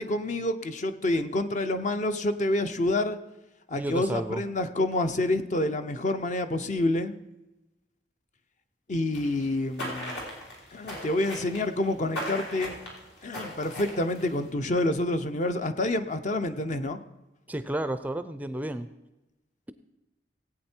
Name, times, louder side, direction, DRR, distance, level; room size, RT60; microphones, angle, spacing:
voice 1, 0.0-3.2 3.7-7.2 8.9-10.2 10.7-12.7 13.2-17.0, left 1 dB, 45° left, 9 dB, 0.7 m, -28 dB
voice 2, 3.8-4.4 17.5-18.9, right 1 dB, 10° right, 11 dB, 0.4 m, -31 dB
sound 1, 9.1-14.5, equal, 70° left, 3.7 m, -38 dB
17.0 x 8.7 x 4.4 m, 0.99 s
head